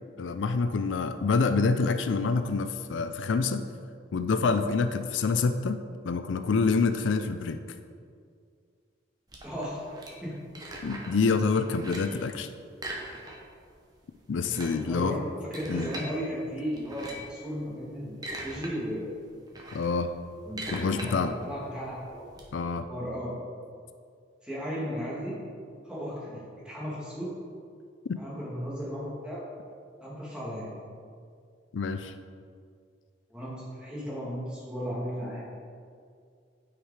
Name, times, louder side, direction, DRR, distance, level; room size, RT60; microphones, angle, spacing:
voice 1, 0.2-3.6 4.1-7.6 10.8-12.5 14.3-15.3 15.7-15.9 19.7-20.1 20.7-21.3 22.5-22.9 28.1-28.2 31.7-32.1, left 4 dB, 85° left, 10 dB, 0.4 m, -27 dB
sound 1, 9.3-11.2 11.6-12.2 12.7-13.6 13.9-14.0 14.3-16.1 16.7-17.4 17.9-18.7 19.1-22.4, right 1 dB, 20° right, 1.0 m, -40 dB
voice 2, 9.4-9.8 10.2-10.4 12.1-12.3 14.4-15.2 15.5-19.2 20.4-22.3 22.9-23.4 24.4-25.4 25.8-27.3 28.2-29.4 30.0-30.7 33.3-35.4, equal, 5° right, -7 dB, 2.1 m, -35 dB
9.1 x 4.9 x 4.9 m, 2.2 s
head